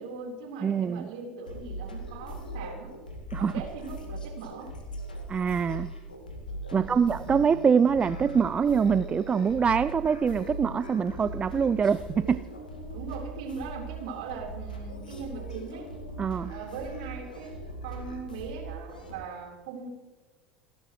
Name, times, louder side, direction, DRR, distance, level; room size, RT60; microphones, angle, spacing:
voice 1, 0.0-2.9 3.3-4.7 6.7-7.3 12.9-15.9 16.5-19.9, right 5 dB, 60° right, 1 dB, 4.0 m, -40 dB
voice 2, 0.6-1.1 3.3-3.5 5.3-5.9 6.7-12.5 16.2-16.5, right 6 dB, 25° right, 15 dB, 0.4 m, -24 dB
sound 1, 1.5-19.1, right 1 dB, 80° left, 1.9 m, -40 dB
29.5 x 11.5 x 3.2 m, 1.2 s
figure-of-eight pair, 70°, 5 cm